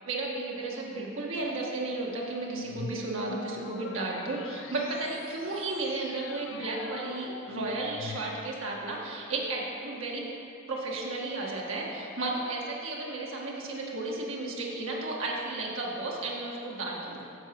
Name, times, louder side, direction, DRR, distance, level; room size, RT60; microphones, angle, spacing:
voice 1, 0.0-10.2 10.7-17.3, right 2 dB, 60° right, -3 dB, 1.3 m, -33 dB
sound 1, 2.4-8.7, left 4 dB, 55° left, 0.4 m, -43 dB
10.0 x 4.5 x 6.9 m, 2.7 s
head